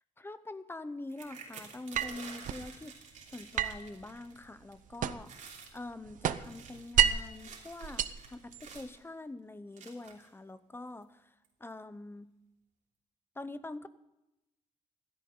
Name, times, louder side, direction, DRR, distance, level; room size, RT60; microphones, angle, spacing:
voice 1, 0.2-2.9 3.3-11.3 11.6-12.3 13.4-13.9, left 2 dB, 15° left, 13 dB, 0.8 m, -45 dB
sound 1, 1.1-4.4 4.7-5.0 5.2-5.8 6.3-9.0 9.8-10.3 11.0-11.1 11.4-11.7, right 5 dB, 70° right, 3.2 m, -50 dB
sound 2, 1.9-2.7 3.6-5.4 5.7-7.4 7.8-8.9, right 9 dB, 85° right, 0.7 m, -31 dB
16.0 x 13.5 x 3.9 m, 0.89 s
cardioid pair, 115°, 13 cm